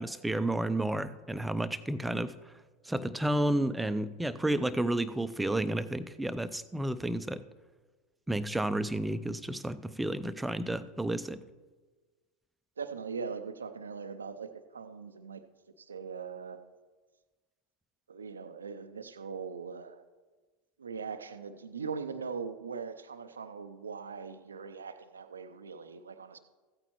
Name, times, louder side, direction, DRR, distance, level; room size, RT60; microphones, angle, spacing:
voice 1, 0.0-2.3 2.9-7.4 8.3-11.4, right 1 dB, 5° right, 11 dB, 0.5 m, -31 dB
voice 2, 12.8-15.4 15.9-16.6 18.1-20.0 20.8-26.4, right 5 dB, 90° right, 9 dB, 0.5 m, -40 dB
15.0 x 8.7 x 3.0 m, 1.3 s
hypercardioid pair, 85°, 0 cm